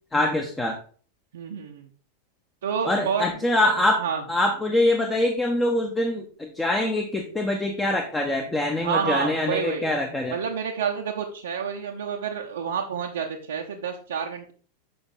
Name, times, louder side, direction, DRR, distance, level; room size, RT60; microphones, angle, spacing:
voice 1, 0.1-0.8 2.8-4.0 4.3-10.4, left 1 dB, 10° left, 2 dB, 1.0 m, -24 dB
voice 2, 1.3-1.9 2.6-3.2 3.6-4.2 8.8-9.8 10.3-14.5, right 7 dB, 65° right, 0 dB, 0.8 m, -29 dB
6.9 x 5.7 x 4.0 m, 0.44 s
figure-of-eight pair, 90°, 0 cm